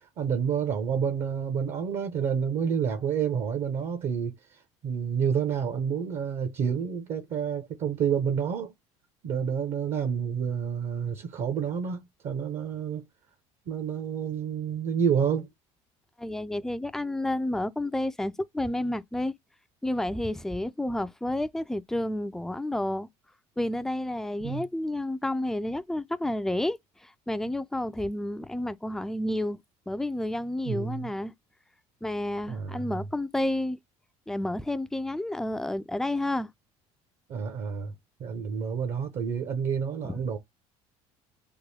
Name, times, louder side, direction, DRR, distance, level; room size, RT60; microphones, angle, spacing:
voice 1, 0.2-4.3 4.8-8.7 9.2-13.0 13.7-15.5 24.4-24.6 30.6-31.1 32.5-32.9 37.3-37.9 38.2-40.4, right 7 dB, 55° right, 0.9 m, -29 dB
voice 2, 16.2-19.3 19.8-23.1 23.6-29.6 29.9-31.3 32.0-33.8 34.3-36.5 40.0-40.2, left 1 dB, 5° left, 0.3 m, -30 dB
3.7 x 2.2 x 3.3 m
supercardioid pair, 100°, 14 cm